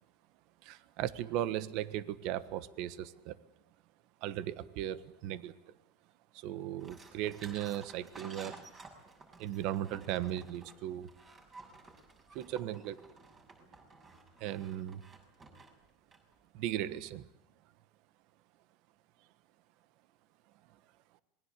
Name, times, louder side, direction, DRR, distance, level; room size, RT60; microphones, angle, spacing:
voice 1, 0.6-3.4 4.2-5.6 6.3-8.6 9.4-11.1 12.3-13.0 14.4-15.0 16.5-17.3, right 12 dB, 60° right, 15 dB, 1.3 m, -37 dB
sound 1, 6.8-16.4, right 3 dB, 25° right, 6.6 m, -53 dB
27.0 x 21.5 x 8.3 m, 0.77 s
supercardioid pair, 125°, 0 cm